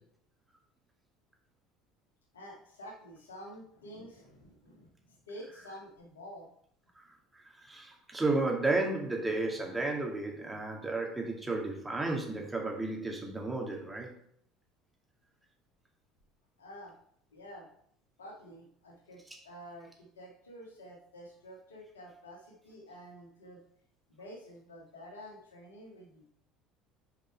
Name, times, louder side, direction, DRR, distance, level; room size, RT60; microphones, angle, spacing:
voice 1, 2.3-6.5 16.6-16.9 17.3-17.7 18.2-23.6 24.1-26.3, equal, 85° left, -1 dB, 1.9 m, -49 dB
voice 2, 7.3-14.1, right 2 dB, 15° right, 0 dB, 2.3 m, -33 dB
7.2 x 5.2 x 4.6 m, 0.66 s
hypercardioid pair, 65°, 0 cm